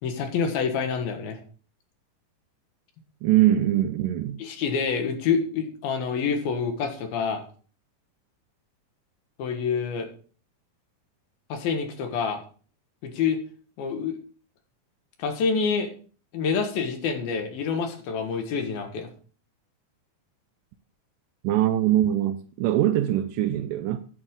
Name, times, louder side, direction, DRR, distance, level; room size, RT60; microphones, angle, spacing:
voice 1, 0.0-1.4 4.4-7.4 9.4-10.1 11.5-12.4 13.0-13.4 13.8-14.2 15.2-15.9 16.3-19.1, left 6 dB, 80° left, 3.3 m, -27 dB
voice 2, 3.2-4.4 21.4-24.0, right 12 dB, 80° right, 2.0 m, -22 dB
11.5 x 8.9 x 3.7 m
omnidirectional pair, 4.2 m